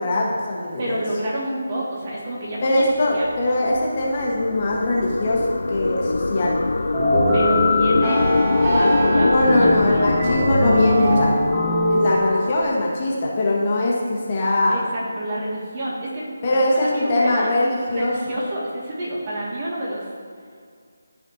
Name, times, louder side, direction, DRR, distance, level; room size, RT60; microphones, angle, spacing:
voice 1, 0.0-1.0 2.6-6.6 9.2-11.3 11.9-14.8 16.4-18.1, left 1 dB, 35° left, -4 dB, 1.4 m, -21 dB
voice 2, 0.8-3.3 7.3-8.2 8.6-10.4 14.7-17.5 17.9-20.0, right 1 dB, 35° right, -5 dB, 2.1 m, -29 dB
sound 1, 2.6-13.2, left 3 dB, 65° left, 0.3 m, -24 dB
sound 2, 6.9-12.6, left 1 dB, 15° right, 1.6 m, -21 dB
13.0 x 5.1 x 2.8 m, 2.1 s
figure-of-eight pair, 155°, 0 cm